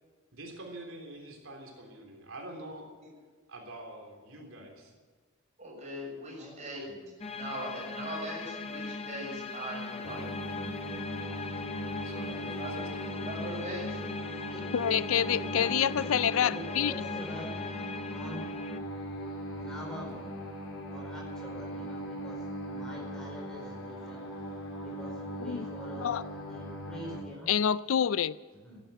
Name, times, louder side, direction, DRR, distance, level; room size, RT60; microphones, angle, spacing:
voice 1, 0.3-2.9 3.5-4.9 12.0-13.1, right 1 dB, 70° right, 3.4 m, -46 dB
voice 2, 5.6-6.9 7.3-10.3 12.6-14.0, right 1 dB, 30° right, 6.5 m, -40 dB
voice 3, 6.4-7.0 14.5-15.0 15.3-17.5 18.1-18.5 19.6-20.3 20.9-24.3 24.8-27.5 28.6-28.8, equal, 5° left, 4.8 m, -45 dB
sound 1, 7.2-18.8, left 4 dB, 25° left, 0.8 m, -40 dB
sound 2, 10.0-27.2, equal, 90° left, 3.7 m, -39 dB
voice 4, 14.7-16.9 25.4-25.7 26.0-26.2 27.5-28.4, left 9 dB, 70° left, 0.4 m, -27 dB
14.0 x 11.0 x 9.1 m
head